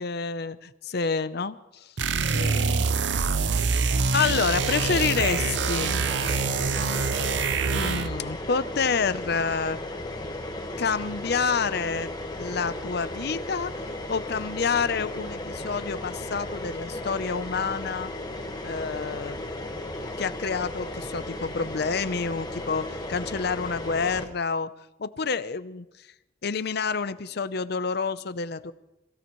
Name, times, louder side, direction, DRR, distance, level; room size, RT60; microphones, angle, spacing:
voice 1, 0.0-1.9 2.2-2.9 3.4-3.8 4.1-6.0 7.7-9.8 10.8-12.1 12.4-13.7 14.1-18.1 18.6-19.4 20.2-24.7 25.0-25.8 26.4-28.7, left 5 dB, 60° left, 14 dB, 0.7 m, -28 dB
sound 1, 2.0-8.2, right 4 dB, 70° right, 0.6 m, -25 dB
sound 2, 4.5-24.3, left 1 dB, 20° left, 1.5 m, -35 dB
27.0 x 16.5 x 3.1 m, 0.94 s
head